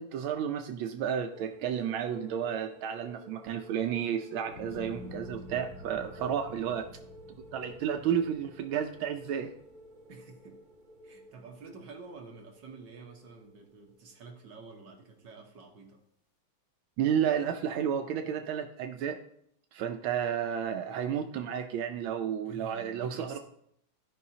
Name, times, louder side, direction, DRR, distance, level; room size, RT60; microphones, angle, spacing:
voice 1, 0.0-6.9 7.5-9.5 17.0-19.2 19.7-23.4, right 8 dB, 80° right, 6 dB, 1.4 m, -32 dB
sound 1, 1.3-14.7 15.0-15.2, right 1 dB, 45° right, 1.3 m, -52 dB
sound 2, 4.5-10.8 11.2-11.8, left 1 dB, 65° left, 2.9 m, -49 dB
voice 2, 10.1-10.6 11.0-16.0 22.5-23.4, right 4 dB, 60° right, 2 dB, 1.7 m, -49 dB
15.0 x 5.4 x 2.8 m, 0.72 s
omnidirectional pair, 2.3 m